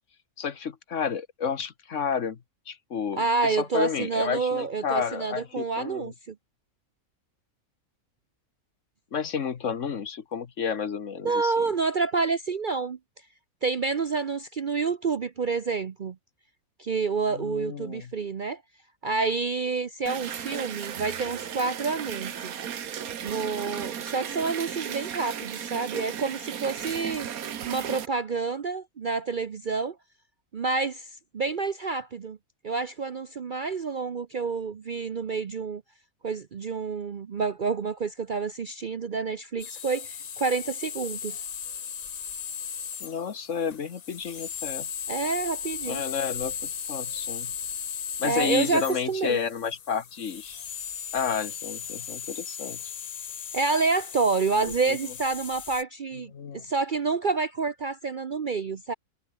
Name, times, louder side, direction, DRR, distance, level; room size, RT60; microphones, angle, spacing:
voice 1, 0.4-2.4 2.7-6.1 9.1-11.6 17.3-18.1 43.0-44.9 45.9-47.5 48.2-50.6 51.1-52.8 54.6-55.0 56.3-56.6, left 6 dB, 55° left, 1.5 m, -31 dB
voice 2, 3.2-6.3 11.2-13.0 13.6-16.2 16.8-18.6 19.0-22.5 23.2-27.3 27.7-30.0 30.5-32.4 32.6-35.8 36.2-41.4 45.1-46.0 48.2-49.4 53.5-58.9, right 4 dB, 45° right, 0.7 m, -28 dB
sound 1, 20.1-28.1, right 9 dB, 70° right, 1.5 m, -35 dB
sound 2, 39.6-55.8, left 8 dB, 85° left, 0.3 m, -37 dB
omnidirectional pair, 1.6 m